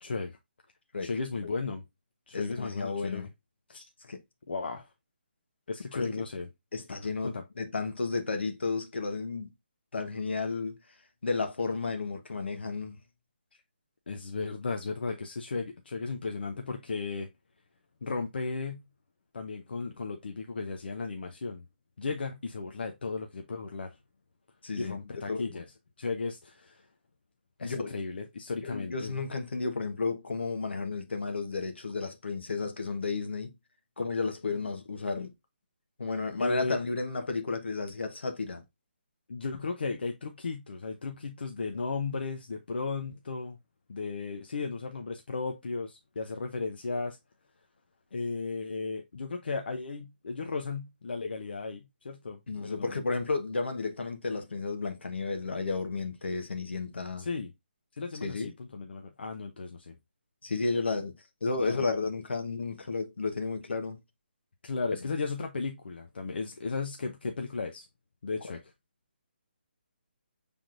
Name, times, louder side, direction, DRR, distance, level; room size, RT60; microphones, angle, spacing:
voice 1, 0.0-0.4 1.0-1.8 2.3-3.3 3.7-3.8 4.5-4.9 5.7-6.5 6.9-7.4 14.1-17.3 18.0-18.8 19.3-21.6 22.0-24.0 24.8-25.7 26.0-26.9 27.6-29.1 36.4-36.8 39.3-43.6 43.9-47.2 48.1-53.0 57.2-57.5 58.0-60.0 61.6-61.9 64.6-67.9 68.2-68.7, left 4 dB, 70° left, 0.7 m, -35 dB
voice 2, 2.3-3.2 4.0-4.2 5.9-6.1 6.7-9.5 9.9-10.8 11.2-13.0 24.6-25.0 25.3-25.4 27.6-28.0 28.6-33.5 34.0-35.3 36.0-38.6 52.5-57.3 58.2-58.5 60.4-61.1 61.4-64.0 68.4-68.6, left 4 dB, 85° left, 1.1 m, -32 dB
6.0 x 3.5 x 2.5 m
hypercardioid pair, 170°, 6 cm